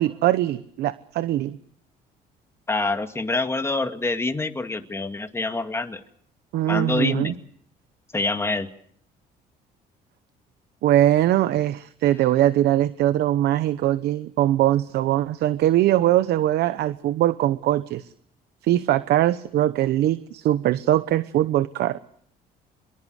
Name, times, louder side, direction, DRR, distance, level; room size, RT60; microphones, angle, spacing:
voice 1, 0.0-1.6 6.5-7.3 10.8-18.1 18.6-22.0, right 13 dB, 75° right, 14 dB, 1.0 m, -21 dB
voice 2, 2.7-6.0 6.7-7.3 8.1-8.7, left 3 dB, 15° left, 6 dB, 2.2 m, -26 dB
25.0 x 22.5 x 6.5 m, 0.65 s
cardioid pair, 110°, 17 cm